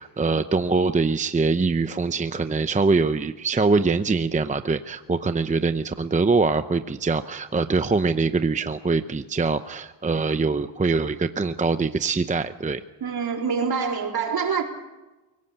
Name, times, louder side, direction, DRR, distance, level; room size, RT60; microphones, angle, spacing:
voice 1, 0.0-12.8, right 4 dB, 15° right, 0.7 m, -23 dB
voice 2, 13.0-14.6, right 6 dB, 55° right, 4.0 m, -25 dB
24.0 x 16.0 x 8.1 m
cardioid pair, 100°, 44 cm